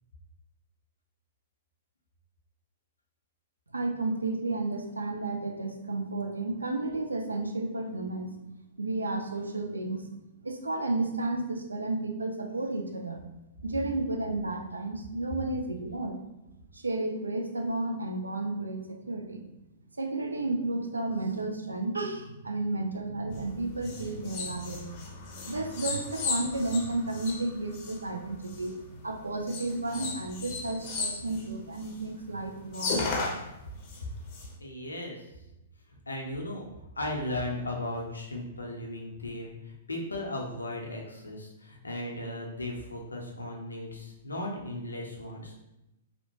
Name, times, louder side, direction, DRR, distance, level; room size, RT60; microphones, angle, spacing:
voice 1, 3.7-8.4 8.8-10.1 10.4-13.2 13.6-16.2 16.7-19.5 20.0-24.9 25.5-33.3, right 2 dB, 85° right, 4 dB, 0.4 m, -32 dB
sound 1, 23.3-28.8 29.5-32.1 32.4-32.5 32.7-34.5, left 4 dB, 40° left, 0.6 m, -35 dB
voice 2, 34.6-35.3 36.1-36.7 37.0-45.6, left 1 dB, 85° left, 0 dB, 0.6 m, -36 dB
2.7 x 2.1 x 2.7 m, 0.91 s
figure-of-eight pair, 110°, 0 cm